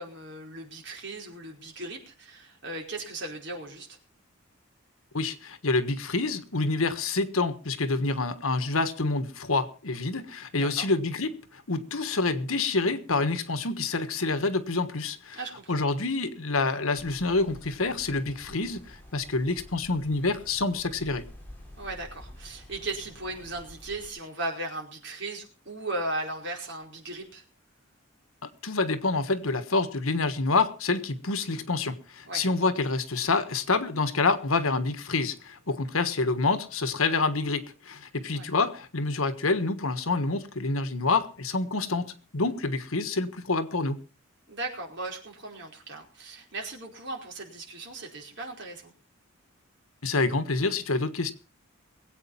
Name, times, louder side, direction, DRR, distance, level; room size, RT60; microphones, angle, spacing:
voice 1, 0.0-4.0 10.5-10.9 15.3-15.9 21.8-27.4 32.3-32.4 38.3-38.5 44.5-48.9, right 2 dB, 55° right, 4.8 m, -37 dB
voice 2, 5.1-15.4 15.7-21.2 28.6-44.0 50.0-51.3, left 3 dB, 80° left, 1.5 m, -27 dB
sound 1, 16.9-24.1, left 1 dB, 10° left, 3.8 m, -49 dB
21.5 x 8.5 x 5.7 m
head